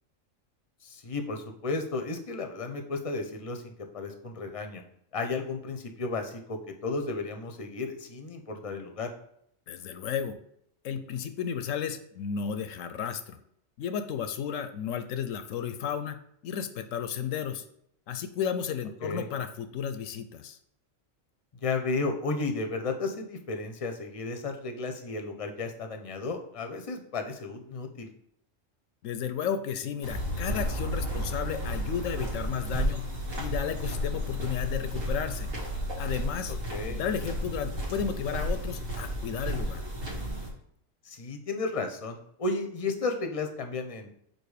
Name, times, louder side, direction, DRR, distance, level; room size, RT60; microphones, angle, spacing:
voice 1, 0.8-4.8 5.1-9.1 19.0-19.3 21.6-28.1 36.5-37.0 41.0-44.2, left 3 dB, 30° left, 5 dB, 0.7 m, -33 dB
voice 2, 9.7-10.4 10.8-13.4 13.8-16.2 16.4-17.6 18.1-20.6 29.0-33.0 33.4-35.5 36.0-36.5 36.9-39.8, left 7 dB, 75° left, 9 dB, 0.9 m, -33 dB
sound 1, 30.0-40.5, equal, 80° right, 2.1 m, -32 dB
5.3 x 4.4 x 4.8 m, 0.71 s
omnidirectional pair, 1.4 m